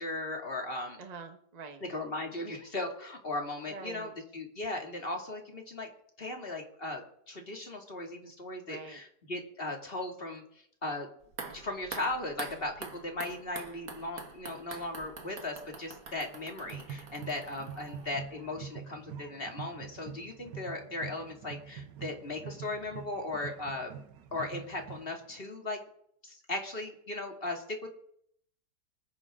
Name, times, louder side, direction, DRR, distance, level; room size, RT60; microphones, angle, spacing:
voice 1, 0.0-1.0 1.9-5.9 6.2-10.4 10.8-11.1 11.5-23.9 24.3-25.8 26.2-27.9, left 2 dB, 35° left, 2 dB, 2.6 m, -37 dB
voice 2, 1.0-1.8 3.7-4.1 8.7-9.0, right 4 dB, 25° right, 5 dB, 1.2 m, -45 dB
sound 1, 11.2-18.4 18.6-18.7, right 4 dB, 55° right, 2.2 m, -46 dB
sound 2, 16.6-25.4, right 7 dB, 90° right, 1.5 m, -45 dB
26.0 x 9.9 x 3.7 m, 0.69 s
omnidirectional pair, 1.8 m